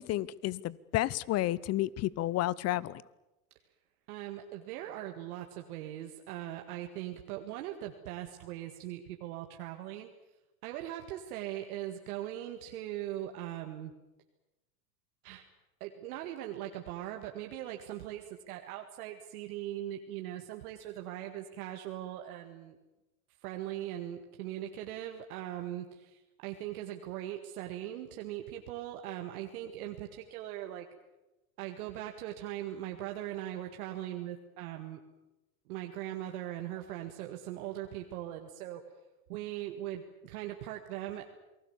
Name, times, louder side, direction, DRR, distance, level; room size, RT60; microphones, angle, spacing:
voice 1, 0.0-3.0, left 15 dB, 35° left, 23 dB, 0.8 m, -31 dB
voice 2, 4.1-10.1 10.6-13.9 15.2-15.5 15.8-22.8 23.4-30.9 31.6-35.0 35.7-38.8 39.3-41.2, right 12 dB, 70° right, 4 dB, 2.0 m, -40 dB
28.5 x 19.5 x 7.3 m, 1.0 s
hypercardioid pair, 110°, 46 cm